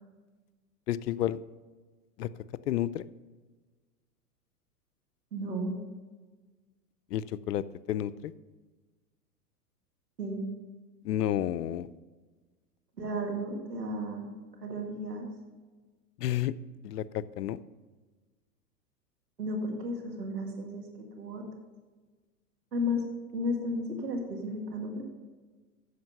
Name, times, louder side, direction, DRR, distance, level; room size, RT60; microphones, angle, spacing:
voice 1, 0.9-1.4 2.2-2.3 2.7-3.1 7.1-8.3 11.0-11.9 16.2-16.5 16.8-17.6, left 11 dB, 80° left, 18 dB, 0.6 m, -31 dB
voice 2, 5.3-5.8 10.2-10.5 13.0-14.3 14.6-15.3 19.4-20.9 21.2-21.4 22.7-23.0 23.3-25.0, left 1 dB, 90° right, 2 dB, 2.1 m, -33 dB
9.5 x 6.6 x 5.6 m, 1.3 s
hypercardioid pair, 105°, 48 cm